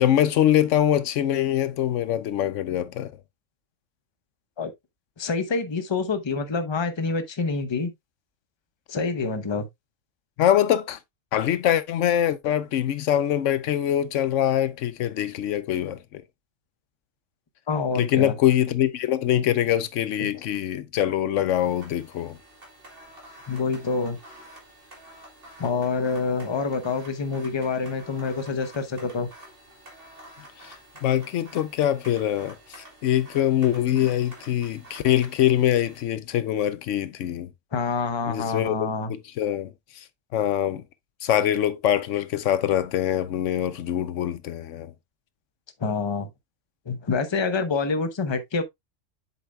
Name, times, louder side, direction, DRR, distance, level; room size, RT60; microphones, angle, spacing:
voice 1, 0.0-3.1 10.4-11.0 11.3-16.2 17.9-22.4 30.6-30.8 31.0-32.6 33.0-37.5 38.3-39.7 40.3-40.8 41.2-44.9, left 11 dB, 80° left, 1.0 m, -23 dB
voice 2, 5.2-7.9 8.9-9.7 17.7-18.4 20.2-20.3 23.5-24.2 25.6-29.3 37.7-39.1 45.8-46.3 46.9-48.6, left 4 dB, 25° left, 0.8 m, -27 dB
sound 1, 21.6-36.0, right 1 dB, 50° right, 2.7 m, -49 dB
7.6 x 7.0 x 2.2 m
omnidirectional pair, 1.3 m